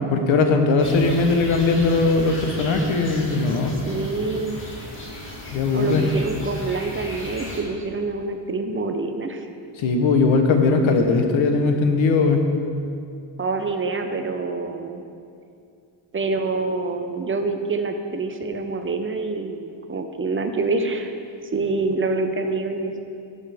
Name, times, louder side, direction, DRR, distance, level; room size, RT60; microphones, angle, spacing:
voice 1, 0.1-3.7 5.5-6.1 9.8-12.5, left 3 dB, 90° left, 5 dB, 1.1 m, -19 dB
sound 1, 0.8-7.6, equal, 25° left, 1.9 m, -35 dB
voice 2, 3.8-4.6 5.7-9.5 13.4-15.0 16.1-21.1 21.5-22.9, right 3 dB, 30° right, 6 dB, 0.6 m, -26 dB
13.5 x 6.7 x 3.5 m, 2.4 s
cardioid pair, 130°, 45 cm